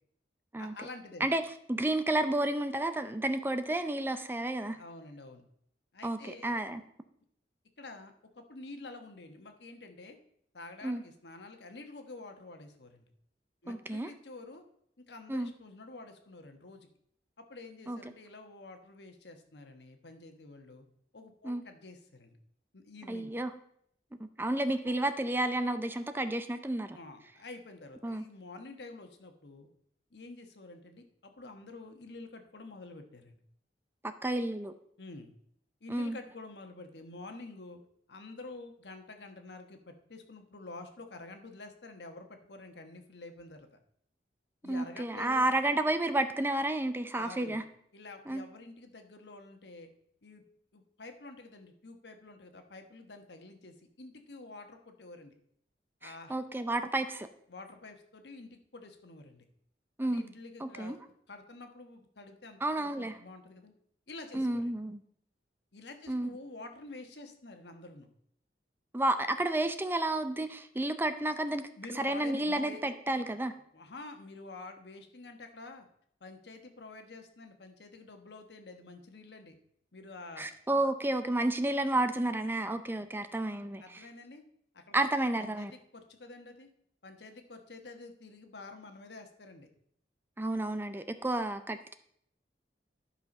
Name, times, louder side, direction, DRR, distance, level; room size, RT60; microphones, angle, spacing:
voice 1, 0.6-1.3 4.7-5.4 5.9-6.6 7.8-10.2 10.5-13.1 13.6-14.6 15.1-16.9 17.4-20.8 21.1-22.4 22.7-23.4 26.9-29.7 30.1-33.4 35.0-35.3 35.8-37.8 38.1-43.7 44.6-45.4 47.1-47.6 47.9-49.9 50.2-50.4 50.7-55.3 56.0-56.3 57.5-59.4 60.0-61.0 61.3-63.7 64.1-64.6 65.7-68.1 71.8-72.8 73.7-75.9 76.2-79.5 79.9-80.5 83.8-84.4 84.7-84.9 85.4-86.7 87.0-89.7, left 3 dB, 75° left, 6 dB, 1.2 m, -48 dB
voice 2, 1.7-4.8 6.0-6.8 10.8-11.0 13.7-14.1 15.3-15.5 17.9-18.0 21.4-21.6 23.1-23.5 24.2-27.0 28.0-28.2 34.0-34.7 35.9-36.2 44.6-47.6 48.3-48.4 56.0-57.3 60.0-60.2 60.6-61.0 62.6-63.2 64.3-65.0 66.1-66.3 68.9-71.7 71.9-73.5 80.4-84.1 84.9-85.7 90.4-91.9, right 1 dB, 10° right, 10 dB, 0.5 m, -31 dB
11.5 x 5.7 x 5.3 m, 0.68 s
head